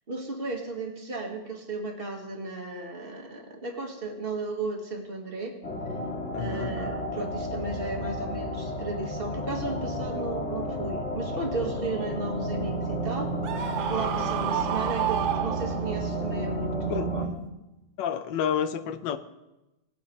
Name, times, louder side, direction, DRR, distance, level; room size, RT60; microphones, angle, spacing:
voice 1, 0.1-5.5 6.4-13.3 13.9-17.4, right 3 dB, 30° right, 1 dB, 1.8 m, -34 dB
sound 1, 5.6-17.3, right 1 dB, 40° left, 2.1 m, -32 dB
voice 2, 6.3-6.8 16.9-17.1 18.0-19.2, left 8 dB, 75° left, 12 dB, 1.4 m, -29 dB
Screaming, 13.4-16.1, right 10 dB, 85° right, 1.6 m, -30 dB
19.0 x 10.5 x 3.2 m, 0.97 s
omnidirectional pair, 2.0 m